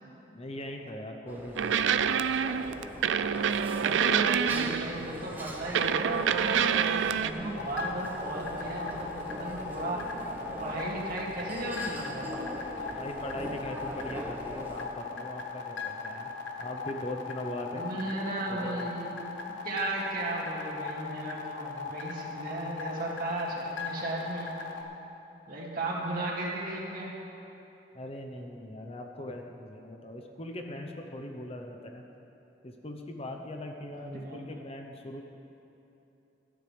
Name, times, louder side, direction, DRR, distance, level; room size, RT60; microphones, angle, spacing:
voice 1, 0.3-1.9 12.9-16.3 16.6-17.8 18.5-18.9 27.9-32.0 32.6-35.2, left 1 dB, 35° left, 3 dB, 0.8 m, -40 dB
sound 1, 1.3-14.9, equal, 10° right, 1.0 m, -41 dB
sound 2, 1.6-5.1 5.7-7.3, right 7 dB, 85° right, 0.4 m, -27 dB
voice 2, 3.7-10.0 10.6-12.3 17.7-19.1 19.6-24.5 25.5-27.1 33.9-34.6, right 2 dB, 50° right, -4 dB, 2.3 m, -35 dB
sound 3, 7.6-24.8, left 5 dB, 90° left, 1.2 m, -38 dB
17.5 x 13.0 x 3.4 m, 2.9 s
head